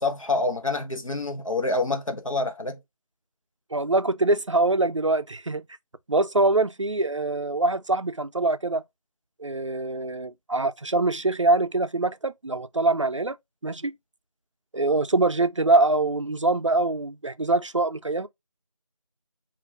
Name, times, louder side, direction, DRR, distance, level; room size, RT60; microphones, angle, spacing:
voice 1, 0.0-2.8, left 3 dB, 60° left, 1.1 m, -27 dB
voice 2, 3.7-5.6 6.1-8.8 9.4-13.4 13.6-13.9 14.7-18.3, right 2 dB, 55° right, 0.4 m, -24 dB
5.2 x 2.5 x 2.4 m
figure-of-eight pair, 180°, 19 cm